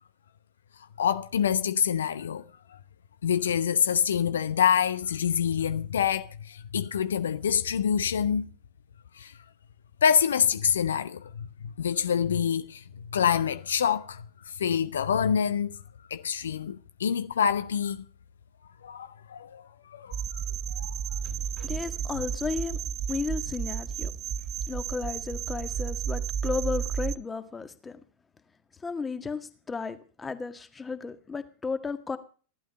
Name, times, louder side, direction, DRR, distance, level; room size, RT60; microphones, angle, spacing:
voice 1, 1.0-2.4 3.2-8.5 9.2-9.3 10.0-12.8 13.1-14.2 14.6-15.7 16.1-18.0 18.8-19.6 19.9-20.2 20.7-20.9, left 8 dB, 65° left, 0.9 m, -26 dB
sound 1, 20.1-27.2, right 8 dB, 35° right, 0.7 m, -32 dB
voice 2, 21.2-22.8 23.1-24.1 24.7-28.0 28.8-32.2, left 4 dB, 15° left, 1.8 m, -34 dB
16.5 x 12.5 x 5.4 m
figure-of-eight pair, 90°, 0 cm